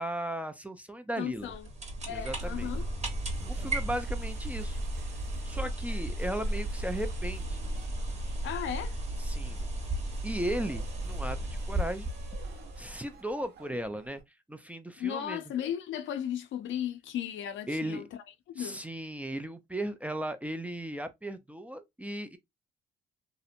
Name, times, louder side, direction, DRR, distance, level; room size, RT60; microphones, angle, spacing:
voice 1, 0.0-1.5 2.1-2.7 3.5-4.8 5.4-7.6 9.2-9.6 10.2-12.1 12.8-14.2 14.5-15.4 17.7-18.0 18.6-22.4, right 1 dB, 5° right, 0.4 m, -36 dB
voice 2, 1.2-1.7 2.0-2.9 8.4-9.0 15.0-18.1 18.5-18.8, left 10 dB, 75° left, 0.5 m, -35 dB
sound 1, 1.3-13.1, right 1 dB, 35° right, 1.0 m, -34 dB
sound 2, 2.3-14.2, right 5 dB, 60° right, 0.7 m, -56 dB
2.8 x 2.0 x 2.5 m
cardioid pair, 90°, 20 cm